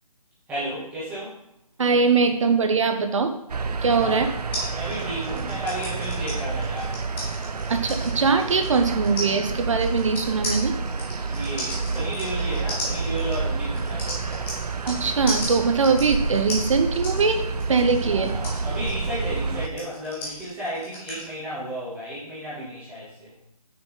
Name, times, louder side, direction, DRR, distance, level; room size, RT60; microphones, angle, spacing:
voice 1, 0.5-1.3 4.0-4.3 4.7-6.9 11.3-14.0 18.1-23.3, right 1 dB, 10° right, -10 dB, 2.3 m, -33 dB
voice 2, 1.8-3.3 3.8-4.3 7.7-10.7 14.8-18.3, right 4 dB, 55° right, 6 dB, 0.9 m, -22 dB
sound 1, 3.5-19.7, right 4 dB, 85° right, 0.5 m, -29 dB
sound 2, 4.5-15.0 15.3-21.2, left 1 dB, 10° left, 1.1 m, -35 dB
6.5 x 6.0 x 3.9 m, 0.76 s
figure-of-eight pair, 155°, 20 cm